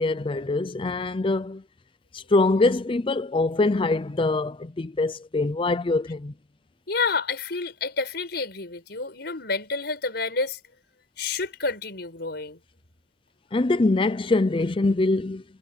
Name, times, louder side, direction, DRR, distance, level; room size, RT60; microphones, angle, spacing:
voice 1, 0.0-1.6 2.1-6.3 13.5-15.4, left 2 dB, 30° left, 0.5 m, -23 dB
voice 2, 6.9-10.6 11.2-12.6, left 4 dB, 65° left, 5.7 m, -29 dB
head